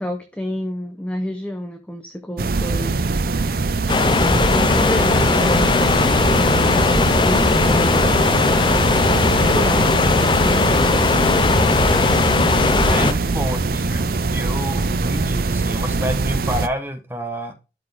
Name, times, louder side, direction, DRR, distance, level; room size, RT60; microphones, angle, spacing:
voice 1, 0.0-3.0 3.2-3.6 4.2-8.2 9.0-10.7, left 1 dB, 5° left, 0.7 m, -30 dB
sound 1, 2.4-16.7, right 3 dB, 55° right, 0.5 m, -22 dB
sound 2, 3.9-13.1, left 4 dB, 25° left, 0.3 m, -18 dB
voice 2, 12.9-17.5, equal, 10° right, 1.1 m, -28 dB
12.5 x 4.3 x 3.5 m
head